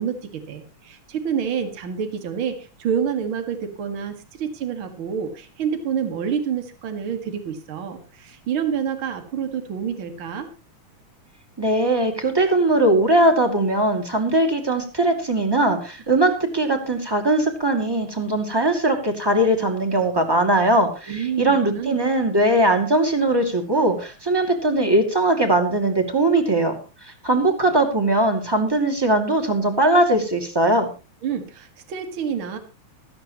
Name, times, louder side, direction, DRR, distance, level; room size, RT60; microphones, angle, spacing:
voice 1, 0.0-10.5 21.1-22.0 31.2-32.6, right 7 dB, 45° right, 7 dB, 2.5 m, -28 dB
voice 2, 11.6-26.8 27.2-30.9, right 1 dB, 10° right, 4 dB, 2.1 m, -20 dB
17.0 x 13.5 x 3.1 m, 0.32 s
omnidirectional pair, 3.3 m